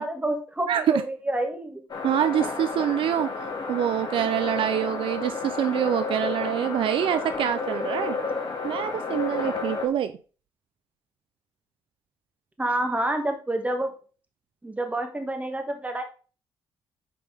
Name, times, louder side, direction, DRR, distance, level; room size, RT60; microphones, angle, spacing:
voice 1, 0.0-1.8 12.6-13.9 14.6-16.0, right 1 dB, 15° right, 5 dB, 2.0 m, -28 dB
voice 2, 0.7-1.0 2.0-8.2 8.6-10.1, right 10 dB, 75° right, 11 dB, 0.6 m, -25 dB
sound 1, 1.9-9.9, left 4 dB, 50° left, 2.1 m, -31 dB
8.5 x 5.0 x 3.5 m, 0.36 s
cardioid pair, 70°, 9 cm